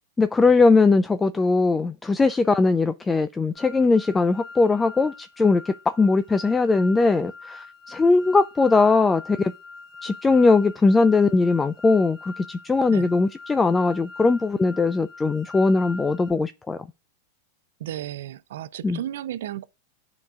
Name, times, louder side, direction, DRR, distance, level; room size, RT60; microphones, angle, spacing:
voice 1, 0.2-9.5 10.0-16.8 18.8-19.0, left 3 dB, 15° left, 0.3 m, -20 dB
sound 1, 3.5-16.3, left 4 dB, 35° left, 1.6 m, -43 dB
voice 2, 17.8-19.6, right 12 dB, 70° right, 0.4 m, -33 dB
11.5 x 3.9 x 2.4 m
hypercardioid pair, 105°, 0 cm